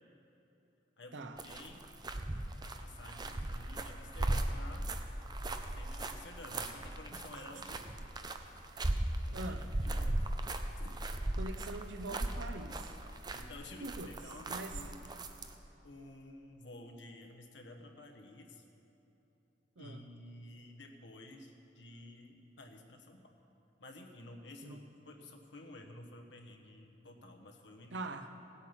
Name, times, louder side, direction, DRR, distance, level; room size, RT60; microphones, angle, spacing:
voice 1, 1.0-1.9 2.6-4.9 5.7-7.8 9.3-10.3 10.8-10.9 13.3-15.4 15.8-18.6 19.8-23.3 23.8-28.0, left 2 dB, 80° left, 3 dB, 1.2 m, -52 dB
sound 1, 1.4-15.5, right 1 dB, 25° right, 0.6 m, -37 dB
voice 2, 9.3-9.7 11.3-12.9 13.8-14.1 14.5-14.8 19.8-20.0 24.6-24.8 27.9-28.3, right 2 dB, 85° right, 7 dB, 0.8 m, -43 dB
16.5 x 8.3 x 5.9 m, 3.0 s
head